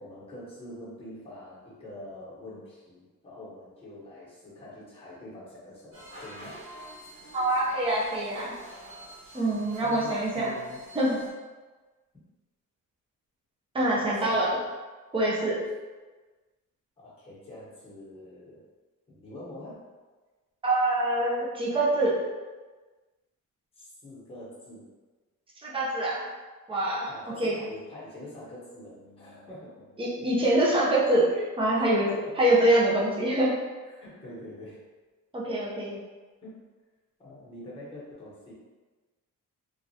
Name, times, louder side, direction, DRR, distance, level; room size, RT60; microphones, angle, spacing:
voice 1, 0.0-6.6 9.8-10.8 14.0-14.7 17.0-18.6 19.1-19.8 23.7-24.8 27.1-30.0 31.8-31.9 33.9-34.8 36.4-36.6 37.2-38.5, left 1 dB, 15° left, -8 dB, 1.0 m, -45 dB
sound 1, 5.9-11.3, right 1 dB, 40° right, 1.2 m, -47 dB
voice 2, 7.3-8.5 9.3-10.5 10.9-11.2 13.7-14.6 15.1-15.6 20.6-22.2 25.6-26.2 26.7-27.1 27.4-27.6 30.0-32.1 32.4-33.6 35.3-36.0, right 1 dB, 15° right, -6 dB, 0.6 m, -25 dB
3.1 x 2.4 x 2.7 m, 1.3 s
wide cardioid pair, 175°, 33 cm